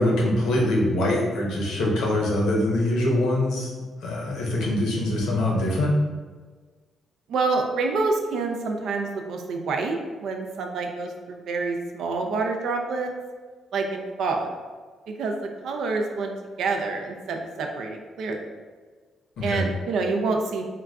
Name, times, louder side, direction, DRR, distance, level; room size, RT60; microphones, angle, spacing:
voice 1, 0.0-3.7 4.0-5.9 19.4-19.7, left 1 dB, 80° left, -3 dB, 0.8 m, -23 dB
voice 2, 7.3-13.1 13.7-14.5 15.1-15.4 15.6-16.3 16.6-18.4 19.4-20.6, right 3 dB, 75° right, 3 dB, 0.4 m, -27 dB
3.7 x 2.3 x 2.3 m, 1.5 s
cardioid pair, 90°, 0 cm